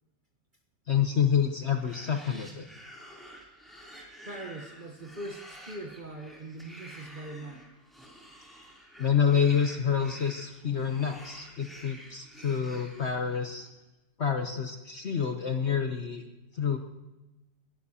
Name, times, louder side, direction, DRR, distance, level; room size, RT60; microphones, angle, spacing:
voice 1, 0.9-2.6 9.0-13.7 14.2-16.2 16.5-16.8, left 7 dB, 50° left, 5 dB, 1.0 m, -28 dB
sound 1, 1.6-13.7, equal, ahead, 3.1 m, -50 dB
voice 2, 4.2-7.7, right 2 dB, 35° right, 3 dB, 1.0 m, -41 dB
20.5 x 11.5 x 2.8 m, 1.0 s
omnidirectional pair, 1.9 m